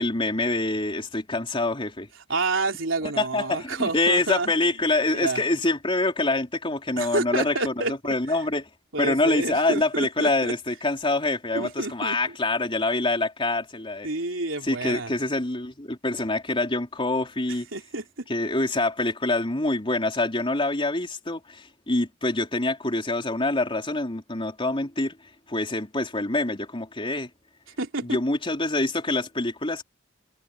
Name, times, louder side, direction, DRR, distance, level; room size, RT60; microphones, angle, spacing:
voice 1, 0.0-2.1 3.2-8.7 9.0-14.1 14.6-17.7 18.3-27.3 28.0-29.8, left 2 dB, 25° left, 3.8 m, -26 dB
voice 2, 2.3-4.5 5.1-5.4 7.0-7.9 8.9-10.5 11.5-12.2 14.0-15.1 17.7-18.3 27.8-28.2, right 3 dB, 70° right, 4.3 m, -29 dB
head